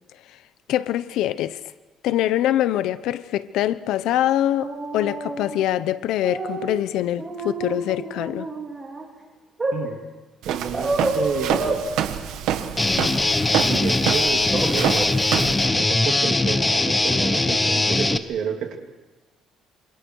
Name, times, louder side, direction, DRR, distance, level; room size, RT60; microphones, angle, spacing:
voice 1, 0.7-1.6 2.0-8.5, left 12 dB, 85° left, 1.0 m, -24 dB
sound 1, 4.6-5.6 6.2-6.7 7.2-9.0 9.6-9.8 10.7-11.8 14.5-14.7 15.0-15.1, right 2 dB, 20° right, 4.8 m, -28 dB
voice 2, 10.4-11.8 13.6-15.1 15.3-18.8, right 7 dB, 60° right, 3.1 m, -30 dB
Walk footsteps, 10.4-15.7, right 10 dB, 90° right, 1.7 m, -27 dB
Guitar, 12.8-18.2, left 2 dB, 10° left, 0.9 m, -21 dB
28.0 x 27.5 x 4.8 m
cardioid pair, 155°, 0 cm